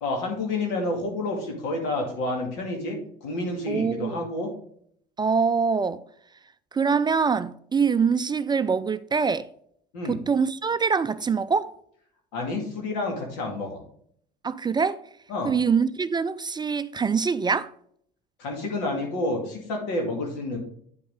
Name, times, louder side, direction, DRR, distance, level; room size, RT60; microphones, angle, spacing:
voice 1, 0.0-4.5 9.9-10.2 12.3-13.8 15.3-15.5 18.4-20.6, left 2 dB, 80° left, 2.3 m, -29 dB
voice 2, 3.7-4.2 5.2-6.0 6.7-9.5 10.1-11.7 14.4-15.0 15.4-17.7, right 5 dB, 20° right, 0.4 m, -24 dB
9.6 x 5.2 x 3.7 m
hypercardioid pair, 70°, 20 cm